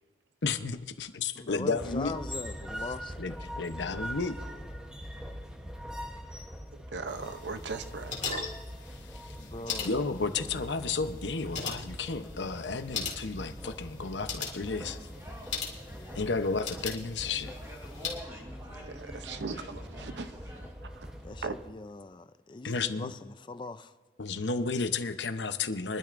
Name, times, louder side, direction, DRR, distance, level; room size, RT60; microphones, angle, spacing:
voice 1, 0.4-2.1 3.2-4.4 9.1-9.4 9.8-15.0 16.1-17.5 22.6-23.1 24.2-26.0, left 4 dB, 90° left, 0.8 m, -32 dB
voice 2, 1.3-3.2 9.4-10.0 15.8-16.4 19.2-19.3 21.2-23.9, left 3 dB, 25° left, 0.4 m, -41 dB
sound 1, 1.8-21.7, equal, 5° right, 0.9 m, -43 dB
voice 3, 6.7-8.5 18.7-21.5, right 4 dB, 80° right, 0.7 m, -39 dB
sound 2, 7.1-18.2, left 6 dB, 45° left, 2.5 m, -41 dB
sound 3, 14.7-20.7, equal, 20° right, 3.1 m, -49 dB
23.5 x 12.0 x 2.6 m
head